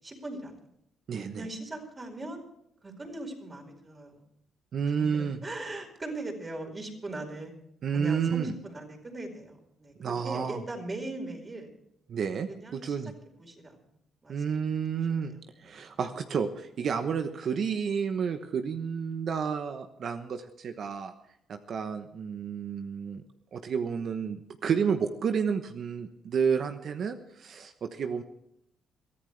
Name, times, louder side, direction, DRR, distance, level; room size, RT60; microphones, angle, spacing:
voice 1, 0.0-0.5 1.3-2.4 2.8-4.2 4.9-7.5 7.9-9.9 10.2-11.7 12.5-12.9 13.4-13.8 14.2-14.8 15.1-15.2 15.6-16.0, right 2 dB, 25° right, 2 dB, 4.9 m, -40 dB
voice 2, 1.1-1.5 4.7-5.4 7.8-8.5 10.0-10.6 12.1-13.1 14.3-15.3 15.6-21.1 21.5-23.2 23.5-28.2, right 6 dB, 60° right, 7 dB, 1.1 m, -30 dB
23.0 x 13.5 x 3.4 m, 0.76 s
cardioid pair, 90°, 0 cm